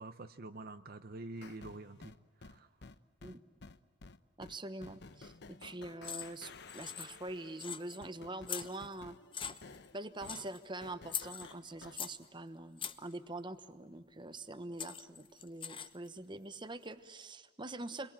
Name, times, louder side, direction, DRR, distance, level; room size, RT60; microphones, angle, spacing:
voice 1, 0.0-2.7, right 2 dB, 55° right, 9 dB, 0.8 m, -47 dB
sound 1, 1.4-12.0, left 3 dB, 60° left, 0.9 m, -54 dB
voice 2, 4.4-9.2 9.9-18.1, right 2 dB, 25° right, 12 dB, 1.1 m, -44 dB
sound 2, 6.0-6.4 6.7-7.3 7.6-8.0 8.5-9.0 9.3-9.9 10.2-10.6 11.1-12.2 12.8-13.1 14.3-14.4 14.8-16.1, left 8 dB, 25° left, 0.9 m, -42 dB
29.0 x 22.5 x 8.9 m, 1.4 s
head